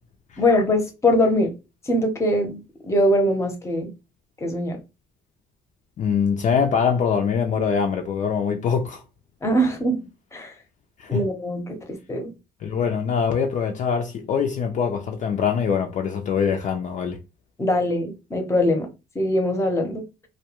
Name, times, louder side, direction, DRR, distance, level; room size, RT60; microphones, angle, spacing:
voice 1, 0.4-1.5 1.9-3.9 4.4-4.8 9.4-10.0 10.3-10.5 11.1-12.3 17.6-18.9 19.1-20.0, left 1 dB, 15° left, 0.7 m, -22 dB
voice 2, 6.0-9.0 11.0-11.2 12.6-17.2, left 6 dB, 45° left, 0.4 m, -23 dB
2.3 x 2.2 x 2.9 m
cardioid pair, 110°, 17 cm